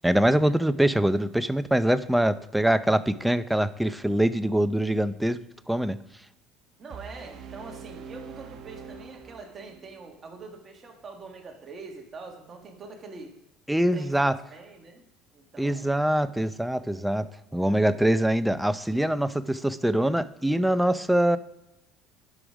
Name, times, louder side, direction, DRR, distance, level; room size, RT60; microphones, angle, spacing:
voice 1, 0.0-5.4 5.7-6.0 13.7-14.3 15.6-17.3 17.5-21.4, right 1 dB, 5° right, 13 dB, 0.5 m, -23 dB
voice 2, 6.8-13.3 13.9-15.0 15.3-16.0 17.6-17.9, right 3 dB, 30° right, 2 dB, 1.8 m, -44 dB
sound 1, 6.9-10.0, right 5 dB, 50° right, 1.0 m, -44 dB
11.5 x 5.0 x 5.0 m, 0.90 s
supercardioid pair, 115°, 0 cm